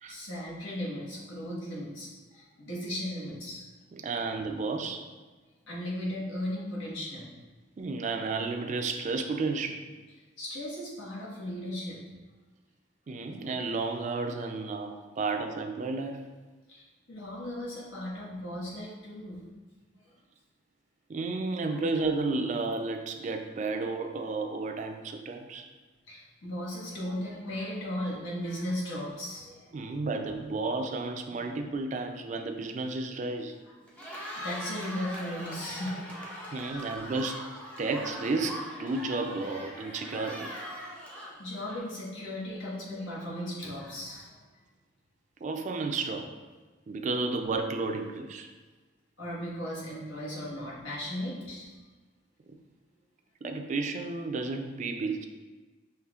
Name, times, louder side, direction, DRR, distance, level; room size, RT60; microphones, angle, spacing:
voice 1, 0.1-3.6 5.7-7.3 10.4-12.0 16.7-19.5 20.0-20.1 26.1-29.8 31.3-31.4 34.0-36.3 40.4-40.5 41.1-44.3 49.2-51.7, left 1 dB, 85° left, -5 dB, 1.2 m, -37 dB
voice 2, 3.9-5.1 7.8-9.9 13.1-16.2 21.1-25.7 29.7-33.5 36.5-40.5 45.4-46.3 46.9-48.5 53.4-55.3, right 3 dB, 40° right, 5 dB, 0.3 m, -32 dB
Cheering, 33.8-42.1, equal, 5° left, 0.6 m, -41 dB
5.6 x 3.1 x 2.4 m, 1.3 s
head